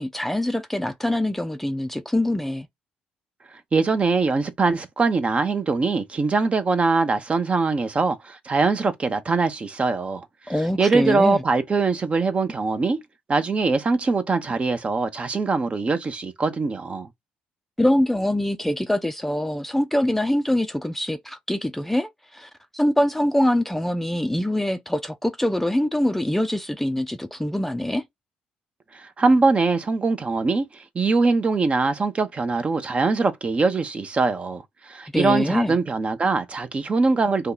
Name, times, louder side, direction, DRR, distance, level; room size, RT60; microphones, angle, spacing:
voice 1, 0.0-2.7 10.5-11.4 17.8-28.0 35.1-35.7, left 1 dB, 5° left, 0.4 m, -24 dB
voice 2, 3.7-13.0 13.3-17.1 28.9-37.5, right 4 dB, 35° right, 0.7 m, -22 dB
2.7 x 2.3 x 3.8 m
supercardioid pair, 60°, 3 cm